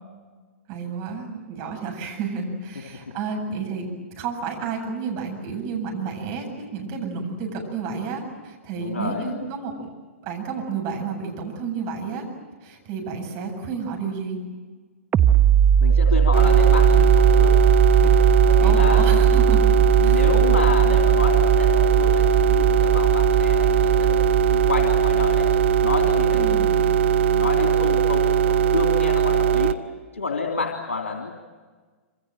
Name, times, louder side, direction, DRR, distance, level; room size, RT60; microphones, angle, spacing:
voice 1, 0.7-3.9 4.2-9.9 10.2-12.3 12.6-14.4 18.6-19.7 20.0-20.2 26.3-26.7, right 5 dB, 40° right, 3 dB, 7.9 m, -31 dB
voice 2, 8.7-9.3 15.8-17.6 17.9-19.2 20.0-24.2 24.5-25.5 25.8-29.8 30.1-31.3, left 4 dB, 75° left, 2 dB, 3.1 m, -29 dB
sound 1, 15.1-26.5, right 7 dB, 20° right, 1.1 m, -19 dB
sound 2, 16.3-29.7, right 8 dB, 60° right, 1.3 m, -20 dB
27.0 x 26.5 x 7.7 m, 1.4 s
figure-of-eight pair, 110°, 7 cm